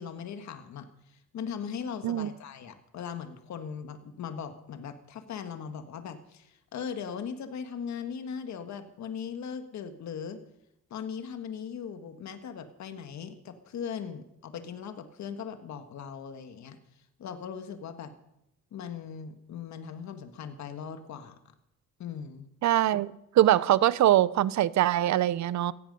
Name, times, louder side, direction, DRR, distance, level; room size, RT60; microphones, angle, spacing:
voice 1, 0.0-10.4 10.9-16.8 17.2-18.1 18.7-21.4 22.0-22.5, left 7 dB, 65° left, 8 dB, 1.6 m, -39 dB
voice 2, 22.6-25.7, right 13 dB, 65° right, 18 dB, 0.7 m, -23 dB
16.5 x 16.0 x 5.4 m, 0.83 s
cardioid pair, 90°, 30 cm